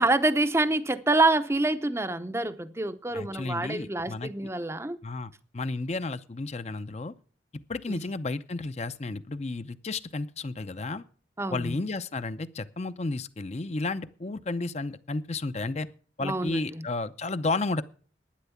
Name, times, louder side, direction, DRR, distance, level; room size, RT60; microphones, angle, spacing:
voice 1, 0.0-5.0 7.9-8.0 11.4-11.8 16.2-16.9, right 2 dB, 15° right, 0.7 m, -26 dB
voice 2, 3.1-4.3 5.0-7.1 7.7-11.0 11.5-15.9 16.2-17.8, left 3 dB, 35° left, 0.6 m, -32 dB
11.5 x 10.0 x 7.1 m
head